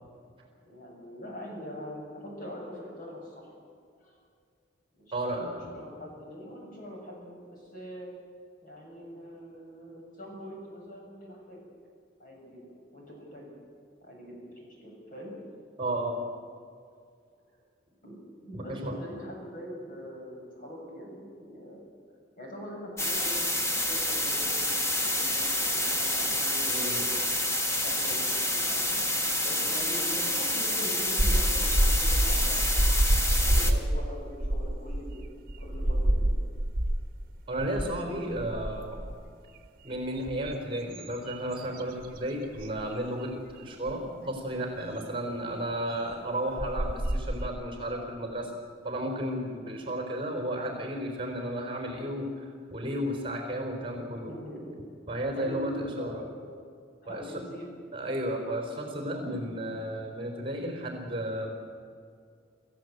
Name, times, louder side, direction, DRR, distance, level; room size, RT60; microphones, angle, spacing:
voice 1, 0.6-3.5 4.0-4.2 4.9-8.1 8.6-11.6 12.2-12.7 12.9-13.5 14.0-15.3 18.0-18.1 18.4-21.9 22.4-27.4 27.8-28.2 28.5-29.0 29.4-35.2 35.6-36.3 49.9-50.1 53.9-54.8 55.3-56.4 57.0-57.7, equal, 45° left, -1 dB, 7.5 m, -43 dB
voice 2, 5.1-5.8 15.8-16.2 18.5-19.0 26.7-27.0 37.5-39.1 39.8-48.5 48.8-54.3 55.1-56.2 57.1-57.3 57.9-61.5, right 1 dB, 25° right, 3 dB, 3.8 m, -33 dB
sound 1, 23.0-33.7, left 1 dB, 15° left, 1.7 m, -28 dB
sound 2, 31.2-37.2 37.6-38.0 38.3-39.3 39.9-42.2 42.6-42.8 43.9-44.0 46.1-46.2 46.6-47.5, right 1 dB, 50° right, 1.4 m, -27 dB
27.5 x 15.0 x 7.9 m, 2.2 s
head